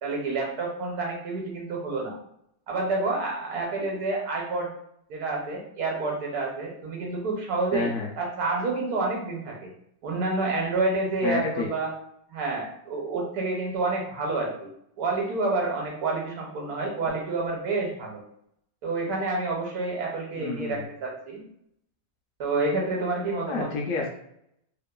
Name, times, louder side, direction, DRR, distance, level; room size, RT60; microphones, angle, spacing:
voice 1, 0.0-2.2 2.7-4.7 5.1-9.7 10.0-11.9 12.3-14.7 15.0-18.2 18.8-21.4 22.4-23.7, right 3 dB, 75° right, -1 dB, 1.2 m, -28 dB
voice 2, 7.7-8.1 11.2-11.7 20.4-20.8 23.5-24.1, left 4 dB, 70° left, -1 dB, 0.8 m, -29 dB
3.0 x 2.1 x 2.2 m, 0.73 s
omnidirectional pair, 1.7 m